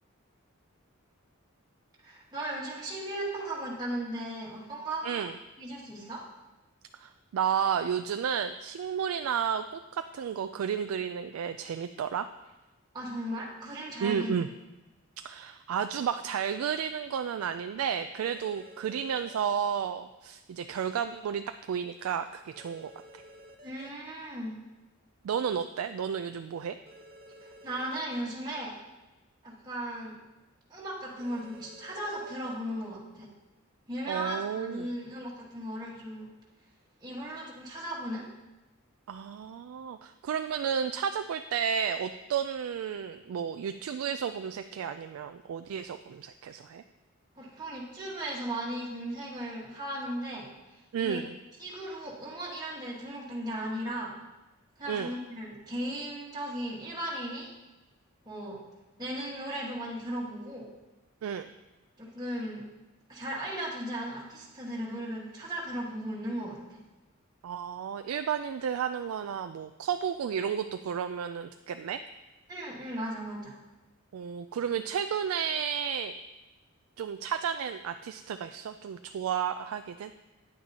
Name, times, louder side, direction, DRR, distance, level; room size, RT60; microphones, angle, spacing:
voice 1, 2.0-5.3 5.6-6.2 12.9-14.3 23.6-24.6 27.4-28.7 29.4-30.2 30.7-33.3 33.9-36.3 37.0-38.3 47.4-51.2 51.6-54.1 54.8-57.5 58.2-58.6 59.0-60.6 62.0-62.6 63.1-66.8 72.5-73.6, right 1 dB, 20° right, -6 dB, 1.5 m, -36 dB
voice 2, 5.0-5.3 7.0-12.3 14.0-14.5 15.2-23.2 25.2-26.8 34.1-34.9 39.1-46.8 50.9-51.4 54.9-55.1 61.2-61.5 67.4-72.0 74.1-76.1 77.0-80.1, right 7 dB, 90° right, 9 dB, 0.3 m, -32 dB
sound 1, 18.2-19.6 22.5-23.9 26.9-28.2 31.2-32.5, equal, 45° right, 0.9 m, -52 dB
9.5 x 8.6 x 2.8 m, 1.1 s
head